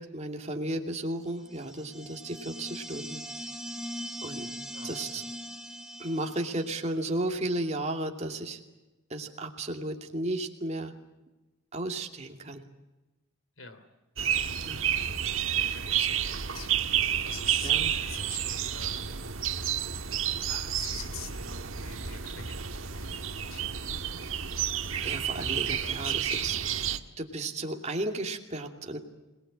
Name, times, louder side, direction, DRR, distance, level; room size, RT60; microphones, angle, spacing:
voice 1, 0.0-3.2 4.2-4.5 4.8-5.2 6.0-8.6 9.1-10.9 11.7-12.6 14.7-14.9 17.6-17.9 25.0-26.5 26.9-29.0, right 1 dB, 35° right, 2 dB, 2.6 m, -34 dB
sound 1, 1.4-6.8, equal, 5° right, 1.3 m, -41 dB
voice 2, 4.7-5.3 13.6-13.9 15.5-16.8 17.2-20.1 20.4-23.8 25.8-26.7, left 6 dB, 70° left, 11 dB, 3.1 m, -46 dB
sound 2, 14.2-27.0, right 9 dB, 75° right, 1.5 m, -30 dB
26.5 x 19.5 x 8.8 m, 1.1 s
head